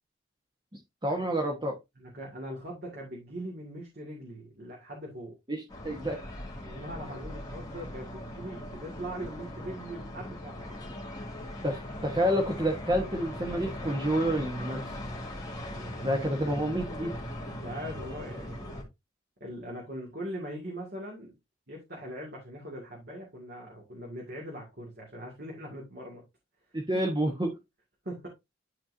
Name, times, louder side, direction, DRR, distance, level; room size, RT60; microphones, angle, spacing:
voice 1, 1.0-1.8 5.5-6.2 11.6-14.9 16.0-17.2 26.7-27.5, right 1 dB, 20° right, 1.2 m, -29 dB
voice 2, 2.0-5.3 6.6-10.8 15.7-16.2 17.4-18.8 19.4-21.3 21.7-26.2 26.9-27.0 28.0-28.3, equal, 50° right, 2.2 m, -41 dB
sound 1, 5.7-18.8, left 1 dB, 20° left, 2.3 m, -40 dB
11.5 x 4.4 x 2.7 m
head